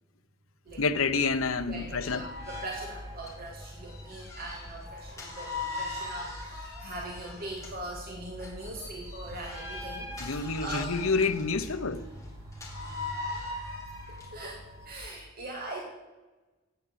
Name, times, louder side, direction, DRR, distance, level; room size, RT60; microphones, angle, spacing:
sound 1, 0.7-15.0, left 2 dB, 15° right, 3.9 m, -41 dB
voice 1, 0.8-2.3 10.2-12.1, left 4 dB, 75° left, 0.9 m, -28 dB
voice 2, 1.7-10.9 11.6-11.7 14.3-15.8, right 2 dB, 45° right, 2.4 m, -41 dB
sound 2, 3.2-7.9 8.4-14.4, left 3 dB, 15° left, 3.5 m, -49 dB
16.5 x 9.0 x 7.6 m
head